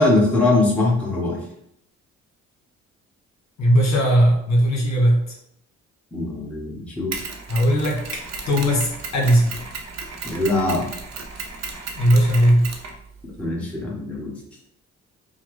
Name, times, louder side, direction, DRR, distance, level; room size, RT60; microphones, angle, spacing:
voice 1, 0.0-1.4 6.1-7.2 10.2-10.9 13.4-14.4, left 2 dB, 5° left, -5 dB, 1.3 m, -21 dB
voice 2, 3.6-5.3 7.5-8.0 8.5-9.6 11.9-12.7, equal, 60° left, -2 dB, 1.7 m, -18 dB
Mechanisms, 7.1-13.4, right 4 dB, 60° right, 0.9 m, -34 dB
5.6 x 2.3 x 3.2 m, 0.73 s
cardioid pair, 90°, 30 cm